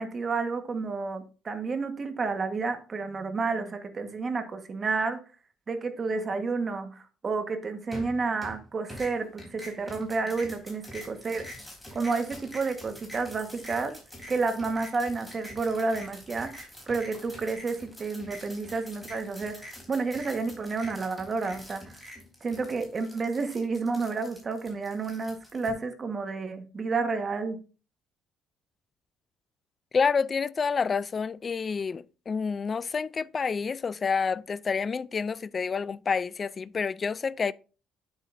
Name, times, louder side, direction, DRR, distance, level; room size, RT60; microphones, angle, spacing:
voice 1, 0.0-5.2 5.7-11.5 11.9-14.0 14.3-22.0 22.4-27.6, right 4 dB, 30° right, 1.4 m, -30 dB
sound 1, 7.9-8.6 8.9-25.7, left 1 dB, 5° left, 3.6 m, -45 dB
voice 2, 29.9-37.5, left 5 dB, 30° left, 0.4 m, -28 dB
9.2 x 7.8 x 2.6 m
cardioid pair, 125°, 0 cm